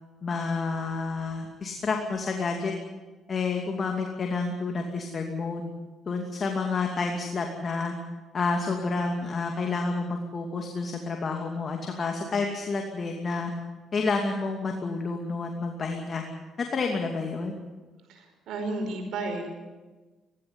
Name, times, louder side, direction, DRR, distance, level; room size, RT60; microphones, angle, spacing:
voice 1, 0.2-2.7 3.3-5.7 6.1-7.9 8.3-13.5 13.9-16.2 16.6-17.5, left 4 dB, 40° left, 2 dB, 2.6 m, -29 dB
voice 2, 18.1-19.5, right 2 dB, 75° right, 6 dB, 5.1 m, -32 dB
17.5 x 17.0 x 9.8 m, 1.2 s
cardioid pair, 85°, 0 cm